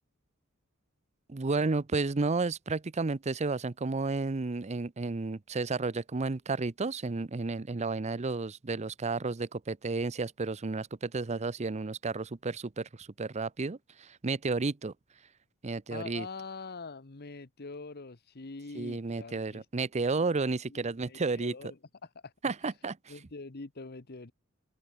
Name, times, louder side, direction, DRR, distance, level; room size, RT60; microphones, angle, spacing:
voice 1, 1.3-14.9 15.6-16.3 18.7-21.5 22.4-22.9, right 3 dB, 35° right, 0.6 m, -32 dB
voice 2, 15.9-19.9 20.7-22.3 23.1-24.3, left 3 dB, 50° left, 1.1 m, -44 dB
head